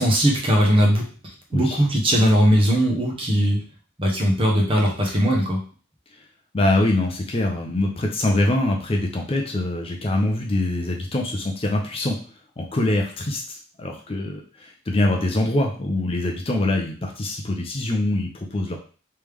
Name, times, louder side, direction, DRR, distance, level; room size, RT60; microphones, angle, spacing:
voice 1, 0.0-3.6 4.0-5.6, equal, 25° right, 0 dB, 0.9 m, -19 dB
voice 2, 6.5-12.2 12.6-18.8, left 1 dB, 30° left, 2 dB, 0.5 m, -24 dB
3.4 x 3.1 x 3.4 m, 0.39 s
head